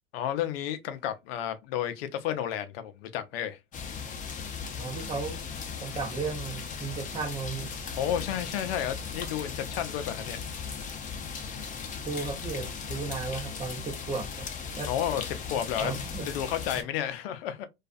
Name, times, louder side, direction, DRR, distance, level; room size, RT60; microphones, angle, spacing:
voice 1, 0.1-3.6 7.9-10.4 14.9-16.0 16.3-17.6, left 10 dB, 70° left, 0.6 m, -32 dB
sound 1, 3.7-16.8, left 6 dB, 25° left, 0.6 m, -37 dB
voice 2, 4.8-5.4 5.8-7.8 12.0-14.5 14.8-14.9 15.8-16.3 16.8-16.9, right 4 dB, 20° right, 0.7 m, -35 dB
2.4 x 2.4 x 2.4 m
hypercardioid pair, 95°, 31 cm